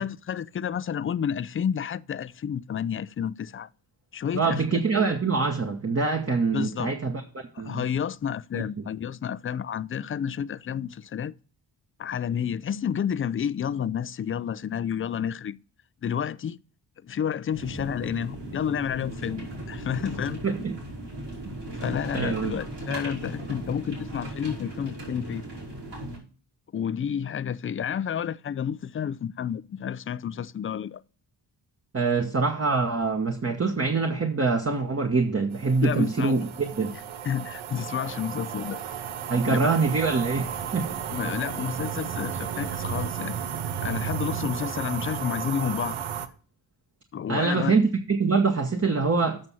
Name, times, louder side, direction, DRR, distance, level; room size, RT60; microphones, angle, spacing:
voice 1, 0.0-3.7 4.1-4.8 6.5-6.9 7.5-11.3 12.0-15.6 16.0-16.6 17.0-20.4 21.7-25.4 26.7-31.0 35.8-36.4 37.2-38.8 39.5-39.7 41.1-43.4 43.8-46.0 47.1-47.7, left 8 dB, 30° left, 0.4 m, -30 dB
voice 2, 4.3-7.2 7.6-7.9 8.5-8.9 20.4-20.7 22.1-22.6 31.9-36.9 39.3-40.9 47.3-49.4, right 4 dB, 30° right, 1.2 m, -24 dB
sound 1, 17.5-26.2, right 1 dB, 60° right, 5.0 m, -37 dB
sound 2, 35.5-46.3, right 9 dB, 85° right, 0.8 m, -33 dB
7.7 x 6.1 x 5.5 m
cardioid pair, 55°, 47 cm